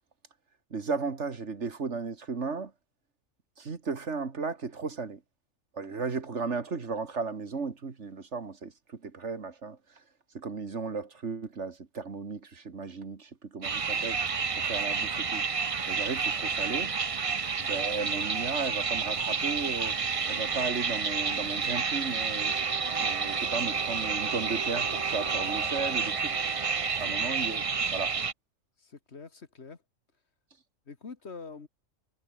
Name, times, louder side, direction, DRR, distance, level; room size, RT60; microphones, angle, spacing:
voice 1, 0.7-2.7 3.6-5.2 5.7-9.8 10.3-15.5 15.9-16.9 17.6-20.0 20.3-22.5 23.0-26.4 27.0-28.1, right 4 dB, 60° right, 2.2 m, -35 dB
sound 1, 13.6-28.3, right 5 dB, 30° right, 0.7 m, -30 dB
voice 2, 28.8-29.8 30.9-31.7, left 4 dB, 55° left, 2.0 m, -45 dB
omnidirectional pair, 1.4 m